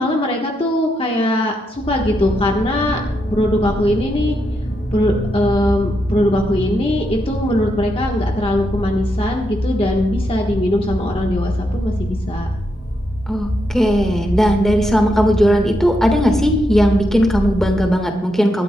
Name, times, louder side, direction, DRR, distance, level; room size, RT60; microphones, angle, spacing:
voice 1, 0.0-3.0 3.3-4.3 4.9-12.5, left 1 dB, 25° left, 0 dB, 1.3 m, -20 dB
sound 1, 1.8-18.0, equal, 45° left, 4.3 m, -24 dB
voice 2, 13.3-18.6, equal, ahead, 2 dB, 1.5 m, -17 dB
24.5 x 12.5 x 2.2 m, 0.92 s
head